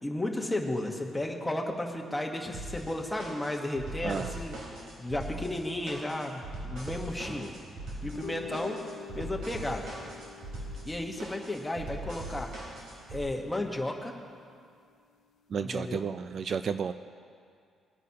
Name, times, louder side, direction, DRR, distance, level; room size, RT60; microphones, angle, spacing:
voice 1, 0.0-4.6 5.0-7.5 8.0-8.8 9.1-9.9 10.8-12.5 13.1-14.1 15.6-16.0, left 1 dB, 10° left, 1 dB, 1.1 m, -33 dB
sound 1, 2.5-13.2, right 1 dB, 75° right, 3.2 m, -41 dB
sound 2, 8.0-14.6, left 8 dB, 65° left, 0.4 m, -48 dB
voice 2, 15.5-16.9, right 6 dB, 45° right, 10 dB, 0.3 m, -32 dB
20.5 x 10.0 x 2.9 m, 2.3 s
cardioid pair, 135°, 0 cm